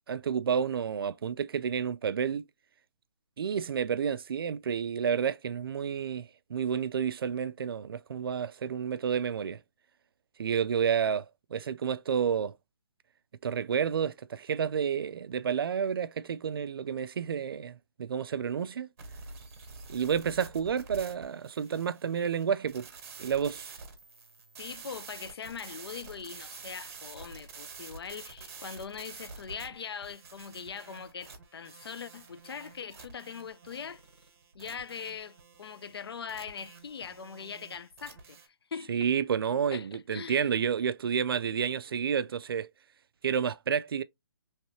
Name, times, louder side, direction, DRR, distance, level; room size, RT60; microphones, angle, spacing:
voice 1, 0.1-2.4 3.4-9.6 10.4-11.3 11.5-12.6 13.4-18.9 19.9-22.9 23.2-23.7 38.9-42.7 43.2-44.0, right 7 dB, 70° right, 0.4 m, -30 dB
sound 1, 19.0-38.5, right 4 dB, 40° right, 1.3 m, -48 dB
voice 2, 24.6-34.0 34.5-39.1 39.7-40.5, left 6 dB, 80° left, 0.4 m, -41 dB
3.1 x 2.9 x 2.9 m
hypercardioid pair, 165°, 13 cm